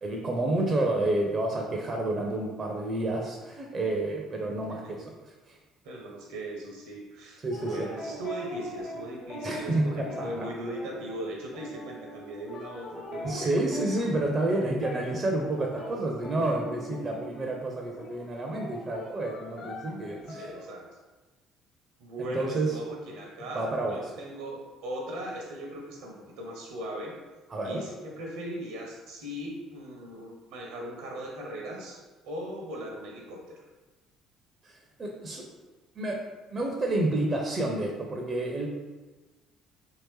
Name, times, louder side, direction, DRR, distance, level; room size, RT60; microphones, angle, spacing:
voice 1, 0.0-5.1 5.5-5.6 7.4-7.9 9.4-10.5 13.2-20.5 22.2-22.7 23.6-24.0 27.5-27.8 34.6-35.4 36.0-36.2 36.5-38.7, right 2 dB, 35° right, 0 dB, 0.5 m, -29 dB
voice 2, 5.8-13.6 20.1-20.9 22.0-27.2 27.6-33.6, right 1 dB, 65° right, 0 dB, 0.7 m, -39 dB
sound 1, 7.5-17.7 18.0-20.7, equal, 45° left, 0.8 m, -42 dB
3.0 x 2.8 x 3.1 m, 1.2 s
figure-of-eight pair, 50°, 0 cm